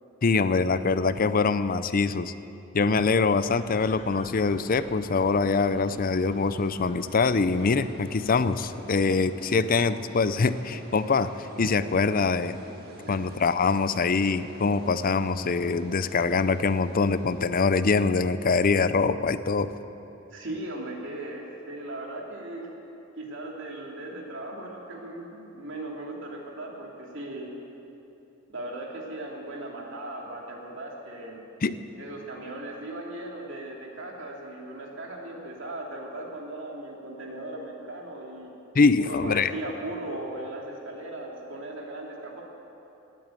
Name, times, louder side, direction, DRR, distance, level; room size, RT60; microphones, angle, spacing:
voice 1, 0.2-2.3 2.7-12.6 13.1-19.7 31.6-31.8 38.7-39.5, left 4 dB, 45° left, 13 dB, 0.5 m, -24 dB
sound 1, 3.3-8.7, left 1 dB, 30° left, 2.5 m, -46 dB
sound 2, 5.0-17.4, right 1 dB, 50° right, 1.8 m, -47 dB
voice 2, 20.3-22.7 23.2-27.5 28.5-31.4 32.0-38.5 39.0-42.4, right 1 dB, 65° right, -1 dB, 2.8 m, -38 dB
18.5 x 8.5 x 9.1 m, 2.9 s
head